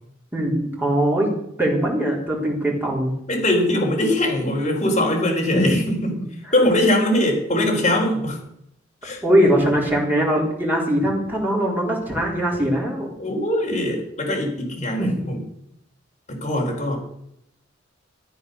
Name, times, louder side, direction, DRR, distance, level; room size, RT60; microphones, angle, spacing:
voice 1, 0.3-1.3 1.6-3.1 5.5-5.6 9.2-13.1 15.0-15.4, equal, 10° right, -3 dB, 3.9 m, -21 dB
voice 2, 3.3-6.2 6.5-8.4 9.0-9.2 13.2-15.4 16.3-17.0, left 1 dB, 35° left, 0 dB, 4.1 m, -21 dB
13.5 x 9.4 x 6.6 m, 0.76 s
head